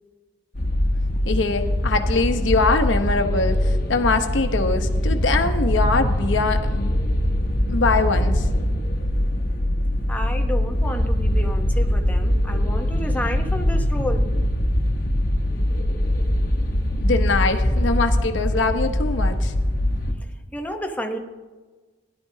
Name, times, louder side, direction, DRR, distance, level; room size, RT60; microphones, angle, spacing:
sound 1, 0.6-20.1, left 1 dB, 50° left, 1.1 m, -22 dB
voice 1, 1.3-6.9 7.7-8.5 17.0-19.5, left 3 dB, 90° left, 6 dB, 1.0 m, -23 dB
voice 2, 10.1-14.3 20.5-21.2, equal, 10° left, 3 dB, 0.9 m, -30 dB
17.0 x 11.5 x 2.8 m, 1.3 s
head